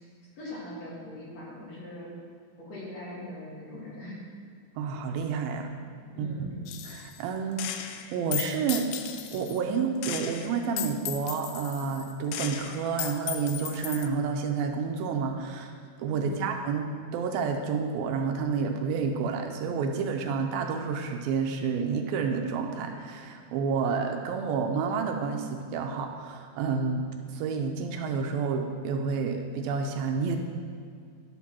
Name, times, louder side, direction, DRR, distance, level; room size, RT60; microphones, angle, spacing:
voice 1, 0.4-2.1 2.6-4.2 6.1-6.6 16.1-16.5, left 1 dB, 50° left, -7 dB, 3.0 m, -41 dB
voice 2, 4.8-5.7 6.2-6.5 6.8-15.7 16.0-27.1 27.3-30.4, right 5 dB, 80° right, 4 dB, 2.4 m, -30 dB
Gunshot gunfire, 6.7-7.2 7.6-9.6 10.0-14.1, left 11 dB, 80° left, 2.2 m, -36 dB
11.5 x 4.3 x 6.0 m, 2.2 s
omnidirectional pair, 4.3 m